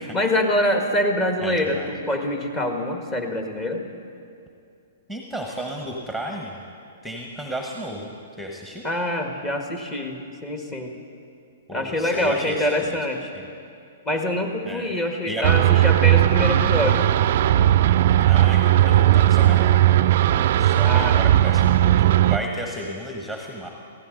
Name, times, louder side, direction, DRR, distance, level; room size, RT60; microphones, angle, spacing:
voice 1, 0.1-3.8 8.8-10.9 11.7-13.3 14.0-17.1 20.8-21.1, left 1 dB, 25° left, 3 dB, 1.6 m, -25 dB
voice 2, 1.4-1.9 5.1-6.6 7.0-8.8 11.7-13.0 13.3-13.5 14.7-14.9 15.3-15.5 18.3-19.9 20.6-23.7, right 1 dB, 5° left, 1 dB, 1.2 m, -33 dB
sound 1, 15.4-22.4, right 13 dB, 55° right, 0.3 m, -17 dB
16.0 x 15.0 x 3.9 m, 2.5 s
hypercardioid pair, 120°, 0 cm